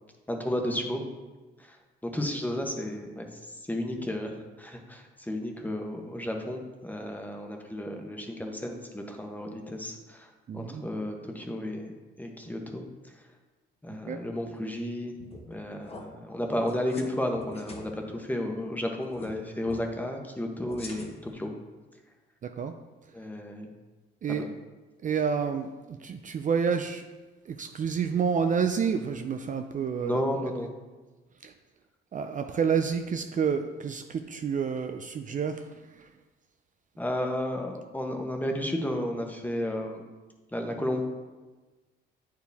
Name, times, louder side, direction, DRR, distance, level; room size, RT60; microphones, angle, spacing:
voice 1, 0.3-1.1 2.1-3.3 3.7-4.3 4.6-11.9 12.2-12.8 13.8-15.1 15.5-21.5 23.1-23.7 24.4-24.5 30.0-30.7 37.0-40.1 40.5-41.0, left 1 dB, 10° left, 2 dB, 1.1 m, -32 dB
voice 2, 10.5-10.8 14.1-14.2 22.6-22.7 24.2-24.4 25.0-27.0 27.5-30.2 31.4-31.5 32.1-35.6, right 6 dB, 40° right, 7 dB, 0.4 m, -29 dB
sound 1, 15.2-15.5 15.8-16.0 16.7-17.1 17.4-17.8 19.1-19.3 19.7-19.8 20.6-21.3, left 3 dB, 30° left, 1.2 m, -43 dB
8.7 x 4.7 x 3.5 m, 1.2 s
cardioid pair, 90°, 20 cm